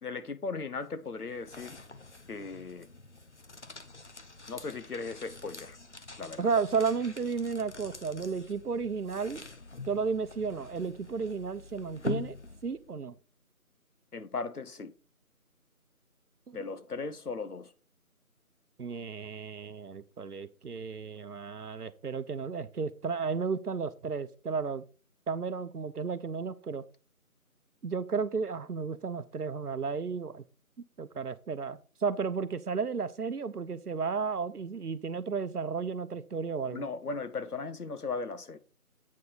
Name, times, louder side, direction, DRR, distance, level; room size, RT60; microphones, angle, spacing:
voice 1, 0.0-1.8 2.3-2.9 4.5-5.8 6.2-6.5 14.1-14.9 16.5-17.7 36.7-38.6, left 4 dB, 85° left, 1.0 m, -37 dB
sound 1, 0.8-13.0, left 3 dB, 50° left, 0.7 m, -45 dB
voice 2, 6.4-9.4 9.9-12.4 12.6-13.1 16.5-16.6 18.8-24.8 25.3-26.8 27.8-30.4 31.0-36.8, right 5 dB, 90° right, 0.9 m, -33 dB
8.4 x 4.5 x 4.8 m
figure-of-eight pair, 175°, 45 cm